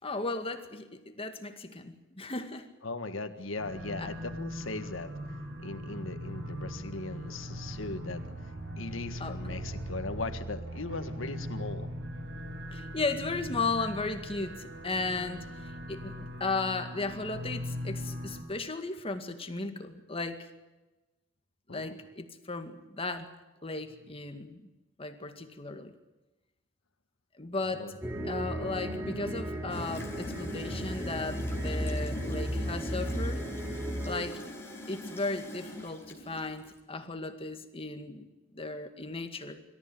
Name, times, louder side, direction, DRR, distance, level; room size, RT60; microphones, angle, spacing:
voice 1, 0.0-2.7 4.0-4.1 9.2-9.4 12.7-20.5 21.7-23.3 23.6-24.6 25.0-25.9 27.4-27.9 28.2-33.4 34.1-34.4 34.9-38.2 38.5-39.6, left 3 dB, 30° left, 7 dB, 2.1 m, -35 dB
voice 2, 2.8-5.1 5.6-8.5 8.8-11.9 21.7-22.0 27.7-28.0, left 3 dB, 85° left, 8 dB, 1.7 m, -38 dB
sound 1, 3.6-18.4, equal, 65° right, 6.5 m, -40 dB
sound 2, 28.0-34.2, equal, 15° right, 2.8 m, -34 dB
Gurgling / Toilet flush, 29.7-36.8, left 1 dB, 15° left, 5.1 m, -43 dB
25.5 x 14.5 x 9.6 m, 1.1 s
head